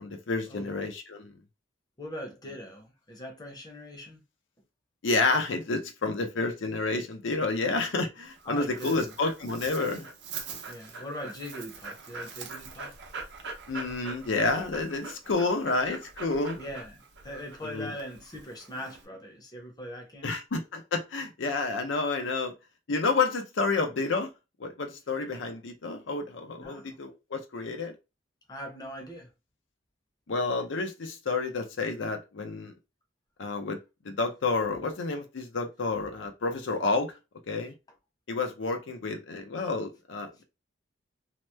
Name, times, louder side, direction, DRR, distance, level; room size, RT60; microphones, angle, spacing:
voice 1, 0.0-1.3 5.0-10.1 13.7-16.6 17.6-17.9 20.2-22.5 22.9-24.3 24.6-27.9 30.3-32.7 33.4-33.8 34.0-37.1 37.5-37.7 38.3-40.4, left 3 dB, 80° left, 0.6 m, -30 dB
voice 2, 2.0-4.2 8.4-9.1 10.7-13.0 16.6-20.4 26.6-27.0 28.5-29.3 40.3-40.4, equal, 20° left, 0.6 m, -41 dB
Dog, 8.2-19.0, right 4 dB, 65° right, 0.7 m, -43 dB
2.9 x 2.1 x 3.2 m
head